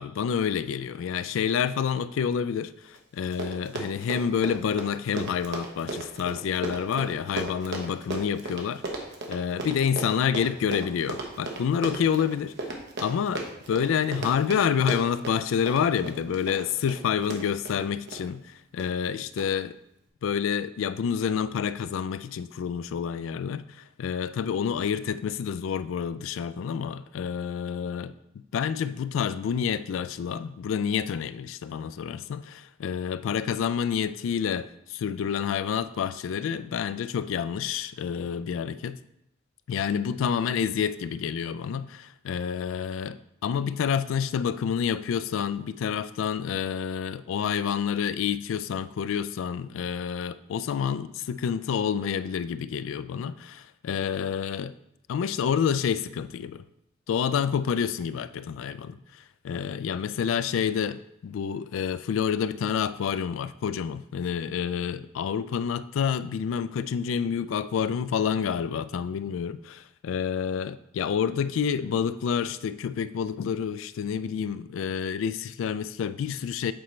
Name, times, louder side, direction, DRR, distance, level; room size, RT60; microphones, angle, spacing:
voice 1, 0.0-8.8 9.3-12.5 13.0-19.7 20.2-39.0 39.7-54.7 55.1-56.6 57.1-76.7, left 7 dB, 70° left, 0.3 m, -28 dB
Run, 2.9-3.0 3.2-18.2 18.8-19.1 19.4-19.5, right 2 dB, 60° right, 0.9 m, -35 dB
8.0 x 4.3 x 3.1 m
head